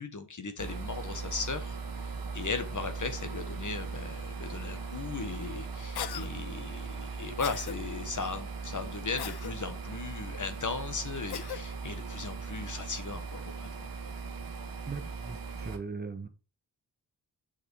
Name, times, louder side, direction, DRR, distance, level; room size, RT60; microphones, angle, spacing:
voice 1, 0.0-1.8 2.3-13.9, left 4 dB, 45° left, 1.3 m, -37 dB
sound 1, 0.6-15.8, right 4 dB, 55° right, 1.3 m, -39 dB
Cough, 6.0-6.3 7.4-7.8 9.2-9.5 11.3-11.6, left 10 dB, 65° left, 0.6 m, -37 dB
voice 2, 14.9-16.3, right 4 dB, 25° right, 0.9 m, -39 dB
7.0 x 5.8 x 4.7 m
wide cardioid pair, 100°, 42 cm